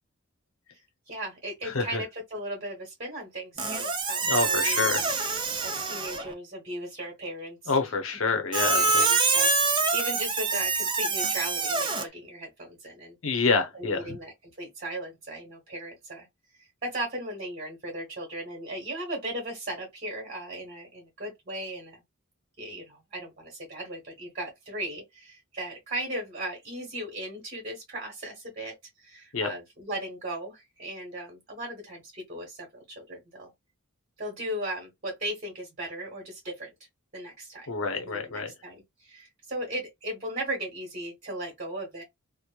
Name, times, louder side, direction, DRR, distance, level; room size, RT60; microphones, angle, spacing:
voice 1, 1.1-5.1 5.6-7.7 8.6-13.2 13.7-16.3 16.8-22.0 22.6-33.5 34.2-36.7 37.1-42.0, right 1 dB, 40° right, 1.2 m, -37 dB
voice 2, 1.6-2.0 4.2-5.1 7.7-9.3 13.2-14.2 29.3-29.5 37.7-38.5, left 4 dB, 70° left, 0.7 m, -27 dB
Squeak, 3.6-6.3 8.5-12.0, right 4 dB, 20° right, 0.5 m, -26 dB
3.0 x 2.0 x 2.3 m
head